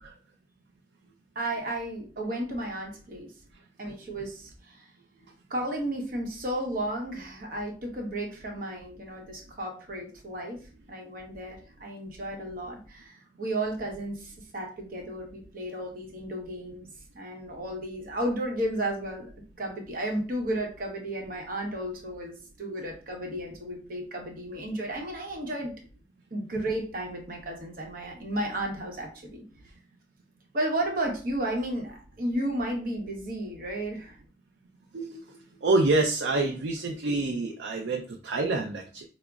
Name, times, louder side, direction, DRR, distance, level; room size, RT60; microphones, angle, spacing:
voice 1, 1.3-3.3 3.8-4.8 5.5-10.6 10.9-16.9 17.1-19.3 19.6-25.7 26.3-29.4 30.5-34.2, right 1 dB, 50° right, 1 dB, 0.8 m, -33 dB
voice 2, 34.9-39.0, right 2 dB, 85° right, 1 dB, 0.5 m, -27 dB
4.9 x 2.0 x 2.3 m, 0.38 s
head